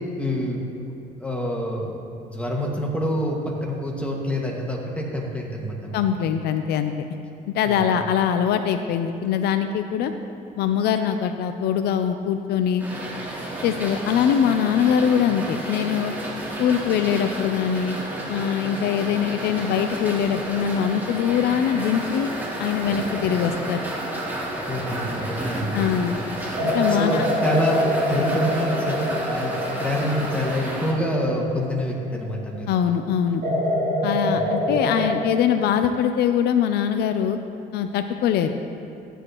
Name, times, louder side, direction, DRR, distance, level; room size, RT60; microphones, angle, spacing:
voice 1, 0.2-0.8 1.2-2.0 2.2-6.0 7.7-8.0 24.6-25.9 26.9-32.7 34.2-34.7, equal, 5° left, -2 dB, 1.9 m, -27 dB
voice 2, 5.9-7.1 7.5-10.1 10.6-12.8 13.6-16.1 16.6-18.0 18.3-22.3 22.6-23.9 25.7-26.2 26.6-27.3 32.7-33.4 34.0-37.4 37.7-38.5, left 8 dB, 75° left, 8 dB, 0.5 m, -22 dB
sound 1, 12.8-30.9, right 1 dB, 10° right, 2.4 m, -31 dB
sound 2, 23.0-25.6 26.6-32.4 33.4-35.2, left 1 dB, 60° right, 2.8 m, -27 dB
15.0 x 10.0 x 3.0 m, 2.8 s
cardioid pair, 110°, 17 cm